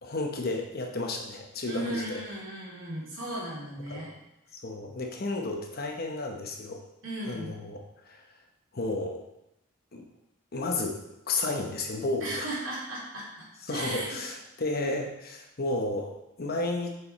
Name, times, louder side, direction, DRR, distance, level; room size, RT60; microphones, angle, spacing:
voice 1, 0.0-2.2 3.9-4.1 4.5-6.8 7.3-8.2 8.7-9.2 9.9-10.0 10.5-11.0 11.3-12.5 13.6-17.0, left 2 dB, 50° left, 2 dB, 1.0 m, -32 dB
voice 2, 1.6-4.1 7.0-7.5 12.2-14.2, right 1 dB, 75° right, -5 dB, 2.7 m, -36 dB
7.2 x 4.9 x 4.3 m, 0.88 s
head